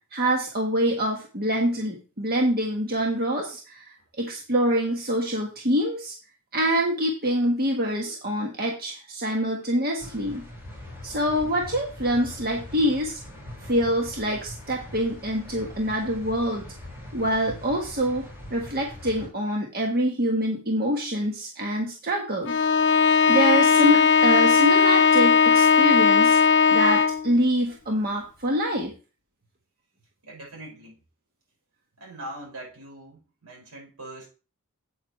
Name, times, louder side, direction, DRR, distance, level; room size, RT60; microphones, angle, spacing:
voice 1, 0.1-3.9 4.2-6.1 6.5-10.5 11.0-13.2 13.6-16.7 17.1-18.2 18.5-22.6 23.1-26.4 26.7-28.9, equal, 45° right, 0 dB, 1.4 m, -25 dB
sound 1, 10.0-19.3, left 1 dB, 10° right, 6.1 m, -42 dB
Bowed string instrument, 22.5-27.3, left 6 dB, 55° left, 0.7 m, -18 dB
voice 2, 30.2-31.0 32.0-34.3, right 1 dB, 80° right, -2 dB, 5.8 m, -41 dB
9.2 x 8.7 x 3.2 m, 0.34 s
head